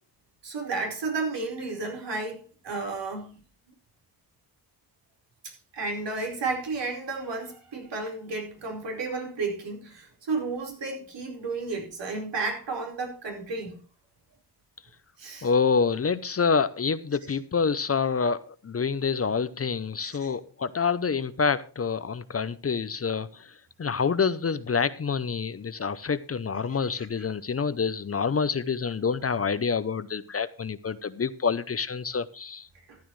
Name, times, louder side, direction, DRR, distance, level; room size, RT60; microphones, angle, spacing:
voice 1, 0.4-3.4 5.4-13.8 15.2-15.5 20.0-20.3 26.9-27.0 32.9-33.0, right 3 dB, 85° right, 4.6 m, -32 dB
voice 2, 15.4-23.5 23.8-32.7, left 5 dB, 35° left, 0.6 m, -27 dB
14.0 x 11.5 x 3.2 m
wide cardioid pair, 120°, 41 cm